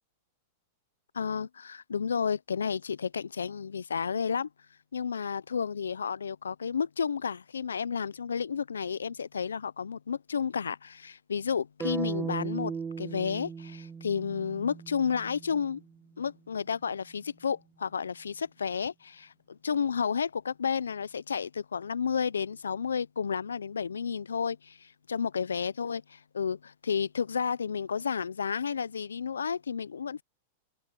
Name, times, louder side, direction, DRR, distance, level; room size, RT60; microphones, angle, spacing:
voice 1, 1.1-4.5 4.9-15.8 16.2-30.2, left 6 dB, 85° left, 0.7 m, -32 dB
sound 1, 11.8-15.9, right 6 dB, 20° right, 1.4 m, -37 dB
hypercardioid pair, 100°, 0 cm